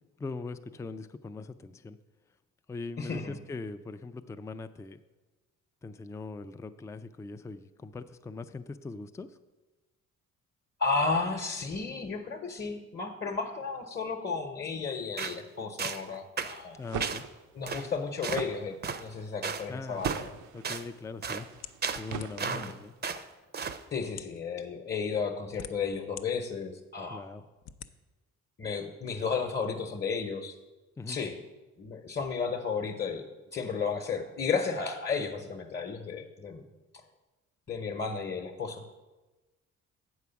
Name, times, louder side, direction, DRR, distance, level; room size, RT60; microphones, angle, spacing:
voice 1, 0.2-2.0 2.7-5.0 5.8-9.4 16.8-17.2 19.7-20.0 20.5-21.5 21.9-22.9 27.1-27.4 31.0-31.2, left 3 dB, 10° left, 9 dB, 0.4 m, -41 dB
voice 2, 3.0-3.3 10.8-16.8 17.5-20.3 22.4-22.7 23.9-27.2 28.6-30.5 31.1-31.3 31.8-33.2 33.5-36.6 37.7-38.8, left 5 dB, 35° left, 3 dB, 0.9 m, -33 dB
sound 1, 15.2-15.4 15.8-16.0 16.4-16.6 17.0-17.2 17.7-17.8 18.2-18.4 18.8-19.0 19.4-19.6 20.0-20.3 20.6-20.8 21.2-21.4 21.8-22.7 23.0-23.2 23.5-23.8, right 6 dB, 35° right, 0.6 m, -34 dB
sound 2, 16.6-22.9, right 7 dB, 80° right, 0.7 m, -40 dB
sound 3, 21.6-22.6 23.4-23.5 24.1-24.4 25.2-26.3 26.8-26.9 27.6-27.9, left 9 dB, 60° left, 0.5 m, -45 dB
8.4 x 4.8 x 6.9 m, 1.1 s
cardioid pair, 90°, 30 cm